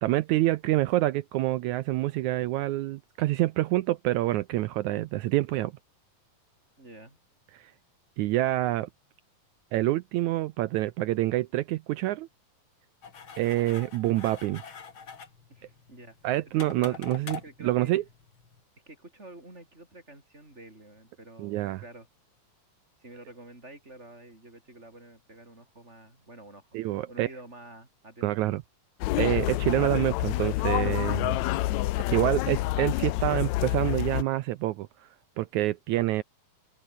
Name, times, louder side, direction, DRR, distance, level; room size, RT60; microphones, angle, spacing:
voice 1, 0.0-5.7 7.5-7.7 8.2-8.9 9.7-12.3 13.4-14.6 16.2-18.0 21.4-21.8 26.7-27.3 28.2-28.6 29.2-31.4 32.1-35.1 35.4-36.2, right 16 dB, 80° right, 1.7 m, -27 dB
voice 2, 6.8-7.2 15.5-16.2 16.5-17.9 18.9-22.1 23.0-28.3, right 2 dB, 20° right, 6.5 m, -49 dB
sound 1, 13.0-18.6, left 6 dB, 40° left, 2.8 m, -45 dB
sound 2, 29.0-34.2, left 17 dB, 85° left, 1.6 m, -28 dB
open air
omnidirectional pair, 4.0 m